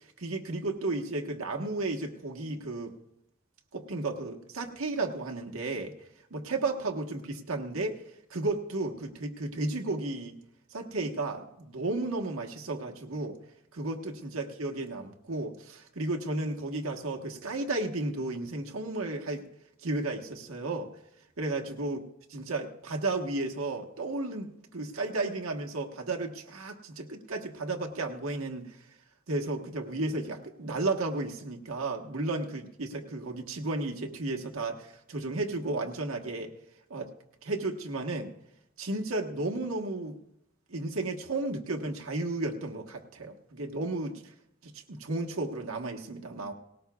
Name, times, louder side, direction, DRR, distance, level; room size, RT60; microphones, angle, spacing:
voice 1, 0.2-3.0 3.7-5.9 6.3-7.9 8.3-10.4 10.7-13.4 13.7-19.5 19.8-20.9 21.4-22.0 22.3-28.8 29.3-36.5 36.9-37.1 37.4-38.3 38.8-40.2 40.7-44.2 44.6-46.5, right 2 dB, 90° right, 3 dB, 1.3 m, -33 dB
19.0 x 18.5 x 2.3 m, 0.80 s
head